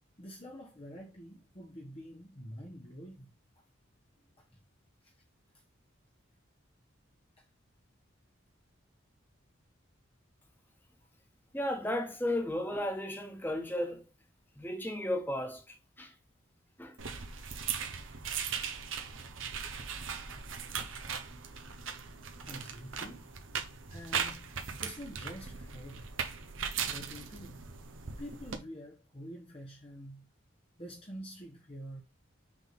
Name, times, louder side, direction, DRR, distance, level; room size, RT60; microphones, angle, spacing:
voice 1, 0.2-3.3 4.4-4.6 5.0-5.1 7.4-7.5 22.4-23.3 23.9-24.5 24.8-26.1 26.9-27.7 28.2-30.3 30.8-32.0, equal, 30° left, 1.2 m, -47 dB
voice 2, 11.5-14.0 14.6-16.1 16.8-17.0, left 1 dB, 10° left, 1.5 m, -34 dB
sound 1, 17.0-28.6, right 6 dB, 80° right, 1.2 m, -39 dB
6.2 x 3.7 x 6.0 m
head